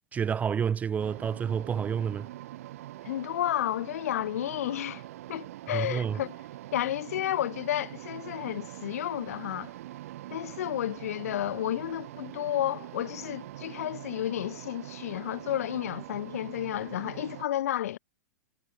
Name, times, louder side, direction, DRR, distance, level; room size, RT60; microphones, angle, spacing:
voice 1, 0.1-2.3 5.7-6.2, right 7 dB, 15° right, 0.5 m, -29 dB
sound 1, 1.0-17.4, right 14 dB, 55° right, 0.9 m, -43 dB
voice 2, 3.0-5.0 5.3-6.3 6.7-9.7 10.3-18.0, left 12 dB, 60° left, 1.1 m, -31 dB
figure-of-eight pair, 100°, 9 cm